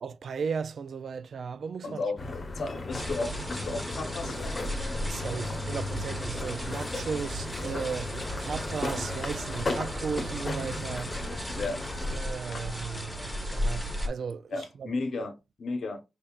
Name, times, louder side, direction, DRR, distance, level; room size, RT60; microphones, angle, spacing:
voice 1, 0.0-2.0 5.1-11.1 12.1-13.2 13.5-14.9, right 5 dB, 70° right, 0.4 m, -36 dB
voice 2, 1.8-4.7 11.5-11.8 12.5-12.7 14.5-16.0, left 3 dB, 70° left, 0.9 m, -34 dB
sound 1, 2.2-12.2, left 2 dB, 40° left, 0.9 m, -36 dB
sound 2, 2.9-14.1, equal, 5° left, 1.1 m, -35 dB
Chicken rooster, 8.2-14.2, right 2 dB, 30° right, 0.9 m, -49 dB
5.3 x 3.7 x 2.4 m
wide cardioid pair, 110°, 0 cm